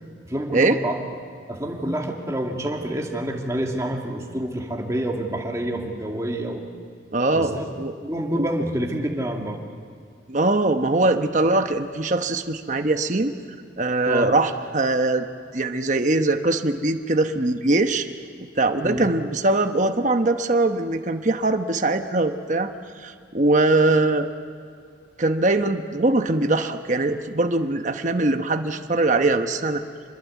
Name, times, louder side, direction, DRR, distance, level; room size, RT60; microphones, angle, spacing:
voice 1, 0.2-1.0 1.5-6.6 7.3-7.7 8.0-9.6 14.1-14.3 18.8-19.1, right 1 dB, 15° right, 0 dB, 2.4 m, -27 dB
voice 2, 7.1-7.9 8.4-8.5 10.3-13.3 13.8-15.2 15.5-18.1 18.4-22.7 23.0-24.3 25.2-29.8, right 2 dB, 40° right, 7 dB, 1.0 m, -22 dB
26.0 x 21.5 x 8.3 m, 2.3 s
head